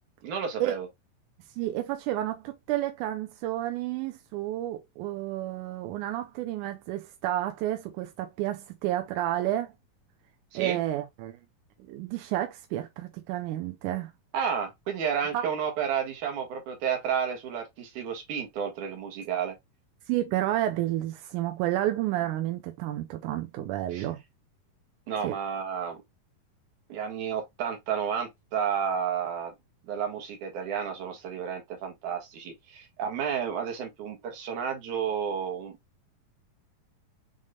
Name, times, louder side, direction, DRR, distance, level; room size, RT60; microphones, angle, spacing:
voice 1, 0.2-0.9 10.5-10.8 14.3-19.6 23.9-24.0 25.1-26.0 26.9-29.5 29.9-35.7, right 7 dB, 65° right, 2.7 m, -31 dB
voice 2, 1.6-9.7 10.5-11.4 11.9-14.1 15.3-15.4 20.1-24.2 25.2-25.4, right 14 dB, 80° right, 1.9 m, -30 dB
6.4 x 3.7 x 2.3 m
omnidirectional pair, 4.1 m